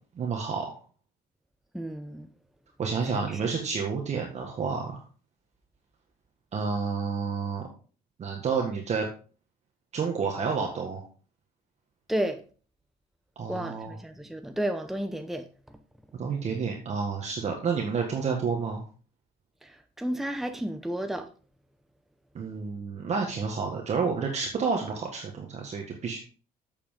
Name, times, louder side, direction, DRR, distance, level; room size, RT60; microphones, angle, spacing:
voice 1, 0.1-0.7 2.8-5.0 6.5-7.7 8.2-9.1 9.9-11.0 13.3-13.9 16.1-18.8 22.3-26.2, right 5 dB, 45° right, 1.7 m, -30 dB
voice 2, 1.7-2.3 3.3-3.4 12.1-12.4 13.5-15.4 19.6-21.3, right 1 dB, ahead, 0.8 m, -32 dB
8.3 x 7.1 x 3.8 m
cardioid pair, 110°, 17 cm